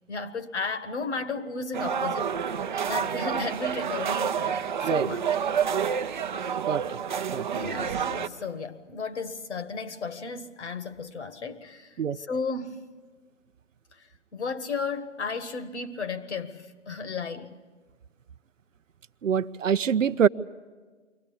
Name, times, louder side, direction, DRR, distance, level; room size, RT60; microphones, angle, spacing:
voice 1, 0.1-2.3 2.9-5.2 7.5-12.9 13.9-17.6, left 4 dB, 60° left, 11 dB, 1.5 m, -34 dB
sound 1, 1.7-8.3, right 7 dB, 40° right, 0.7 m, -29 dB
voice 2, 6.7-7.0 7.3-7.5 12.0-12.2 19.2-20.3, right 7 dB, 90° right, 17 dB, 0.6 m, -24 dB
23.5 x 17.5 x 8.5 m, 1.4 s
figure-of-eight pair, 150°, 38 cm